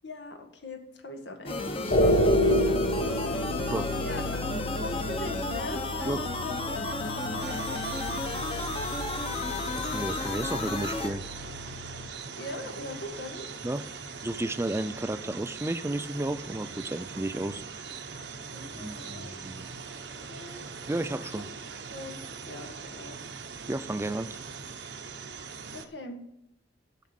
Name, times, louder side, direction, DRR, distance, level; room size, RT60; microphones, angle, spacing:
voice 1, 0.0-2.4 4.0-6.2 6.4-8.7 12.4-13.5 18.5-19.4 20.0-20.7 21.9-22.2 22.5-23.2 25.7-26.2, left 2 dB, 80° left, 5 dB, 1.7 m, -41 dB
sound 1, 1.5-11.1, left 2 dB, 30° left, 1.0 m, -33 dB
sound 2, 1.9-12.1, equal, 50° left, 1.0 m, -30 dB
voice 2, 3.6-3.9 6.0-6.2 9.7-11.2 13.6-13.8 14.2-17.8 18.7-19.7 20.9-21.5 23.7-24.3, right 1 dB, 15° right, 13 dB, 0.4 m, -32 dB
sound 3, 7.4-25.9, right 5 dB, 80° right, 1.0 m, -41 dB
7.6 x 7.0 x 8.3 m, 0.81 s
head